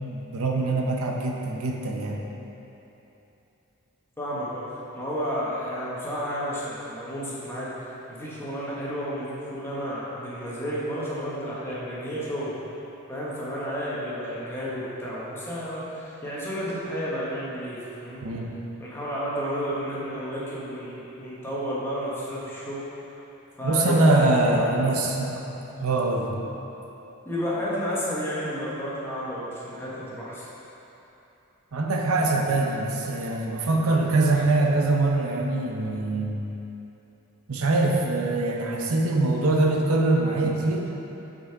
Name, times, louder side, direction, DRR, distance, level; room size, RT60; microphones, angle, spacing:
voice 1, 0.0-2.2 18.2-18.5 23.6-25.4 25.8-26.3 31.7-36.4 37.5-40.9, right 2 dB, 80° right, 0 dB, 0.7 m, -23 dB
voice 2, 4.2-12.5 13.1-18.2 18.8-22.8 23.6-24.8 27.2-30.5, equal, 10° left, -8 dB, 1.3 m, -31 dB
6.2 x 5.5 x 4.6 m, 3.0 s
head